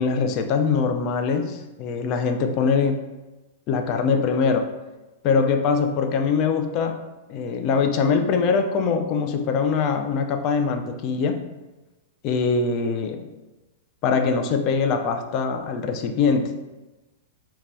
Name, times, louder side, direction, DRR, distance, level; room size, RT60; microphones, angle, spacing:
voice 1, 0.0-3.0 3.7-4.7 5.2-7.0 7.3-11.4 12.2-13.3 14.0-16.5, left 5 dB, 40° left, 6 dB, 0.3 m, -22 dB
2.5 x 2.2 x 3.2 m, 1.1 s
hypercardioid pair, 130°, 0 cm